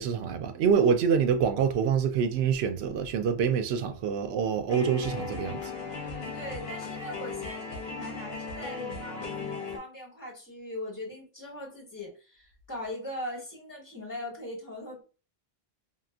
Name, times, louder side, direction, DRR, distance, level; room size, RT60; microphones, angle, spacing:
voice 1, 0.0-5.7, right 7 dB, 85° right, 0.8 m, -26 dB
sound 1, 4.7-9.8, left 4 dB, 60° left, 0.8 m, -37 dB
voice 2, 5.9-15.0, left 1 dB, 20° left, 1.5 m, -40 dB
2.8 x 2.5 x 2.2 m
omnidirectional pair, 1.0 m